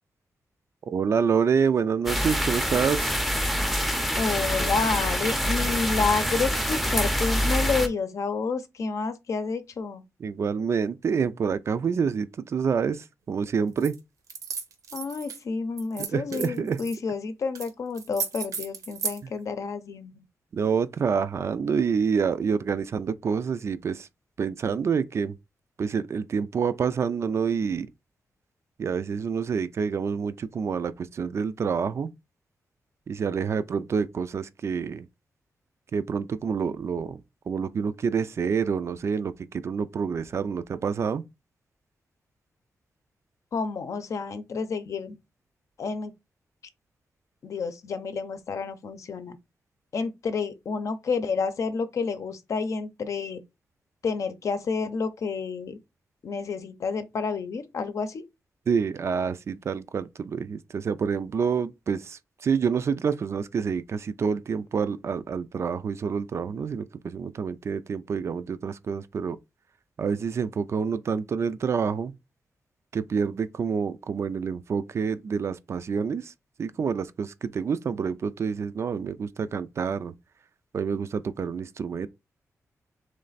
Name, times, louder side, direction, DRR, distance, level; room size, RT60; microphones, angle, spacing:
voice 1, 0.9-3.1 10.2-14.0 16.0-16.8 20.5-24.1 24.4-25.4 25.8-27.9 28.8-32.1 33.1-35.1 35.9-41.2 58.7-69.4 70.0-72.1 72.9-76.3 76.6-80.1 80.7-82.1, right 6 dB, 50° right, 0.4 m, -27 dB
sound 1, 2.1-7.9, equal, ahead, 0.6 m, -26 dB
voice 2, 4.2-10.0 14.9-20.2 43.5-45.2 45.8-46.1 47.4-49.4 49.9-53.4 54.0-55.8 56.2-58.2, left 4 dB, 65° left, 0.6 m, -29 dB
sound 2, 13.8-14.0 14.3-15.4 15.8-17.0 17.5-17.7 17.9-19.2, right 6 dB, 80° right, 0.9 m, -34 dB
3.3 x 3.2 x 3.9 m
wide cardioid pair, 130°, 6 cm